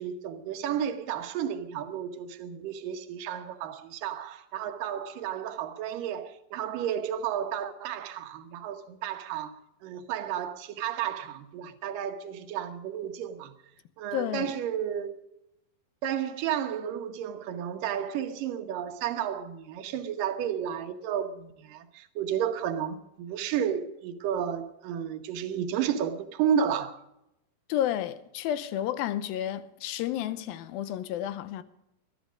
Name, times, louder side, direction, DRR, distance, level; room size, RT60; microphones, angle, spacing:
voice 1, 0.0-13.5 14.0-15.2 16.0-27.0, right 9 dB, 70° right, 2.7 m, -32 dB
voice 2, 14.1-14.5 27.7-31.6, left 11 dB, 85° left, 2.5 m, -31 dB
21.0 x 12.5 x 5.2 m
omnidirectional pair, 4.3 m